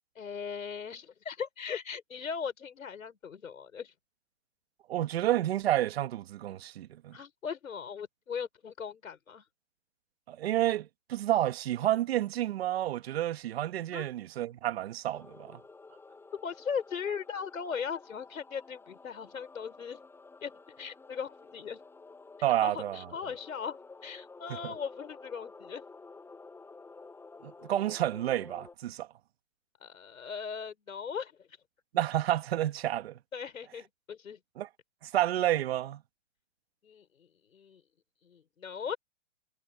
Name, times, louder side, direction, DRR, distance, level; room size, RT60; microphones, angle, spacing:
voice 1, 0.2-3.9 7.1-9.4 13.9-14.1 16.4-20.0 20.4-20.5 20.8-21.8 22.6-25.9 29.8-31.5 33.3-34.4 36.8-37.8 38.2-39.0, left 6 dB, 90° left, 5.8 m, -38 dB
voice 2, 4.9-7.2 10.3-15.6 22.4-23.1 24.6-24.7 27.4-29.1 31.9-33.1 34.6-34.7 35.0-36.0, right 13 dB, 50° right, 1.9 m, -30 dB
sound 1, 15.1-28.7, left 3 dB, 5° left, 8.0 m, -52 dB
hypercardioid pair, 155°, 40 cm